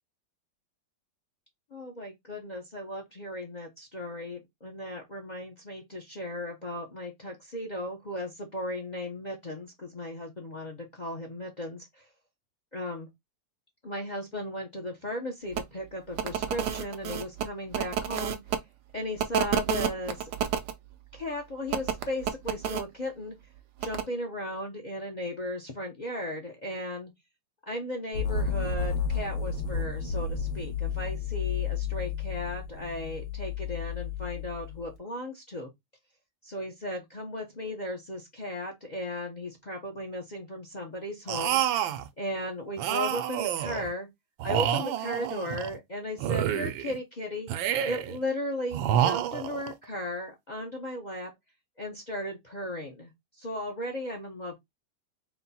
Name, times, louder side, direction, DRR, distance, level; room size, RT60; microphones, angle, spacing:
voice 1, 1.7-12.0 12.7-13.1 13.8-18.4 18.9-20.3 21.1-23.3 23.8-27.1 27.7-35.7 36.4-41.6 42.2-44.1 44.4-47.5 47.8-51.3 51.8-53.1 53.4-54.5, left 1 dB, 65° left, 0.4 m, -36 dB
sound 1, 15.5-15.6 16.1-18.6 19.2-20.7 21.7-22.8 23.8-24.0, right 8 dB, 70° right, 1.1 m, -29 dB
sound 2, 28.1-34.9, left 5 dB, 85° left, 1.8 m, -32 dB
sound 3, 41.3-42.1 42.8-43.9 44.4-45.8 46.2-47.0 47.5-48.2 48.7-49.7, right 10 dB, 85° right, 1.3 m, -28 dB
4.2 x 2.2 x 4.1 m
omnidirectional pair, 2.1 m